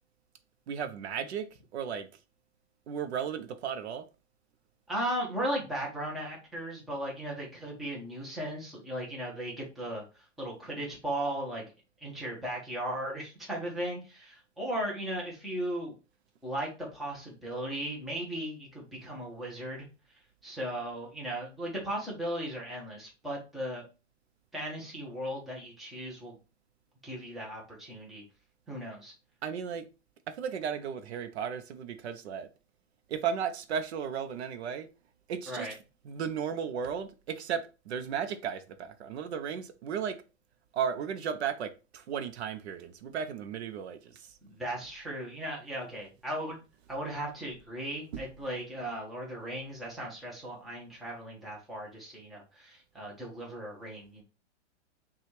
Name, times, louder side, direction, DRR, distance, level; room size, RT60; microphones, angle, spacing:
voice 1, 0.7-2.1 2.9-4.1 29.4-29.9 30.3-32.5 33.1-34.9 35.3-35.7 36.1-40.2 40.7-44.4, right 7 dB, 65° right, 0.7 m, -35 dB
voice 2, 4.9-11.6 12.0-15.9 16.4-19.9 20.4-23.8 24.5-26.4 27.0-28.2 28.7-29.1 35.5-35.7 44.4-46.6 46.9-54.2, right 1 dB, ahead, 0.7 m, -37 dB
5.7 x 2.4 x 3.1 m
hypercardioid pair, 155°, 36 cm